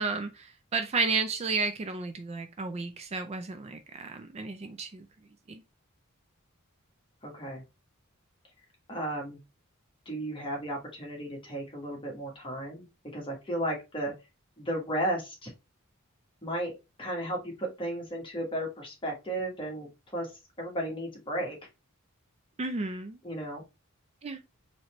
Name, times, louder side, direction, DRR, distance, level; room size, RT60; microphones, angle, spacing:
voice 1, 0.0-5.1 5.5-5.6 22.6-23.2 24.2-24.4, right 4 dB, 30° right, 0.4 m, -32 dB
voice 2, 7.2-7.6 8.9-9.4 10.0-12.9 13.1-14.1 14.6-15.5 16.4-16.7 17.0-20.3 20.6-21.6 23.2-23.6, right 1 dB, 25° left, 1.3 m, -34 dB
4.0 x 3.2 x 2.9 m
head